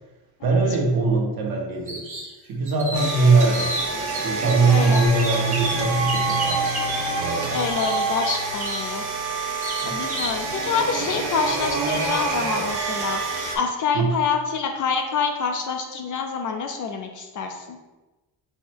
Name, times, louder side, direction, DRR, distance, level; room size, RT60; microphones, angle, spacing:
voice 1, 0.4-2.0 2.5-3.7 4.2-6.7 7.2-7.6 9.8-9.9 13.9-14.1, right 4 dB, 50° right, 0 dB, 1.0 m, -21 dB
sound 1, 1.9-2.3 2.7-4.5 4.9-7.0 7.8-8.9 9.6-10.4, right 2 dB, 20° right, 0.8 m, -31 dB
sound 2, 2.9-13.6, right 3 dB, 80° right, 1.1 m, -27 dB
voice 2, 4.7-5.0 7.5-9.0 9.9-13.2 13.5-17.8, left 5 dB, 45° left, 4 dB, 0.4 m, -26 dB
Bass guitar, 5.0-9.6 10.3-11.3, left 3 dB, 75° left, 1.2 m, -34 dB
5.6 x 2.1 x 4.4 m, 1.1 s
cardioid pair, 150°, 44 cm